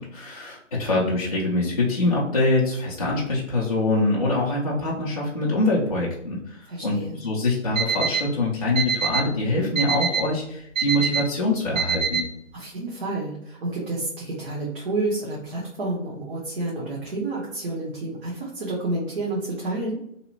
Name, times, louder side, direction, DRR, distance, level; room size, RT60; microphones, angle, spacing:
voice 1, 0.0-6.9 7.2-12.3, left 2 dB, 30° left, -6 dB, 0.4 m, -24 dB
voice 2, 6.7-7.1 12.5-20.0, right 2 dB, 45° right, -5 dB, 0.8 m, -29 dB
Alarm, 7.8-8.2 8.8-9.2 9.8-10.2 10.8-11.2 11.8-12.2, right 7 dB, 85° right, 1.2 m, -23 dB
2.8 x 2.1 x 2.7 m, 0.74 s
figure-of-eight pair, 155°, 39 cm